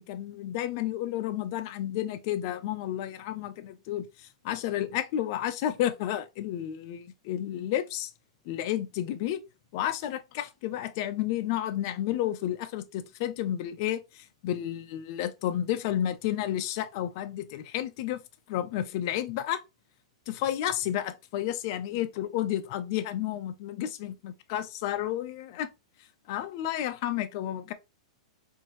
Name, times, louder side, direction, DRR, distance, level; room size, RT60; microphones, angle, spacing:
voice 1, 0.1-4.1 4.4-8.1 8.5-9.4 9.7-18.2 18.5-19.6 20.3-25.7 26.3-27.7, left 12 dB, 40° left, 0.5 m, -31 dB
4.5 x 2.7 x 3.0 m
supercardioid pair, 170°, 3 cm